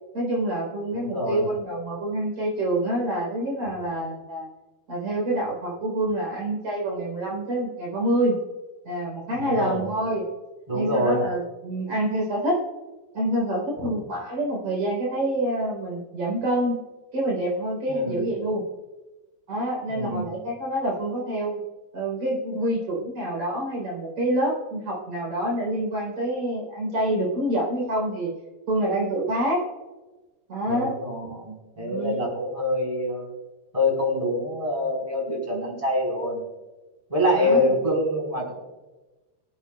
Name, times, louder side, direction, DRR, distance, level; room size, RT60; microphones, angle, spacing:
voice 1, 0.1-4.5 4.9-8.3 8.8-10.2 10.7-12.6 13.1-16.8 17.1-18.6 19.5-21.6 21.9-28.3 28.7-29.6 30.5-31.0 31.8-32.2 37.4-37.7, right 1 dB, 50° right, -3 dB, 5.2 m, -27 dB
voice 2, 0.9-1.5 9.4-9.8 10.7-11.2 13.8-13.9 17.9-18.3 19.9-20.3 30.7-33.3 33.7-36.4 37.1-38.5, left 1 dB, 10° right, -2 dB, 4.0 m, -25 dB
24.0 x 9.1 x 2.4 m, 1.2 s
omnidirectional pair, 4.4 m